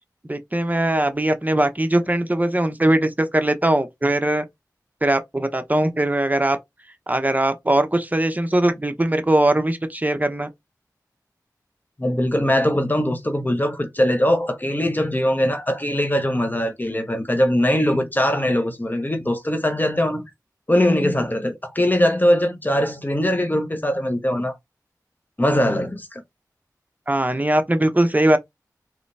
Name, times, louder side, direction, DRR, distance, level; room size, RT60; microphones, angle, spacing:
voice 1, 0.3-4.4 5.0-6.6 7.1-10.5 27.1-28.4, right 1 dB, 25° right, 0.8 m, -20 dB
voice 2, 12.0-20.2 20.7-24.5 25.4-26.2, left 1 dB, 25° left, 1.0 m, -21 dB
4.0 x 3.2 x 3.3 m
wide cardioid pair, 45°, 7 cm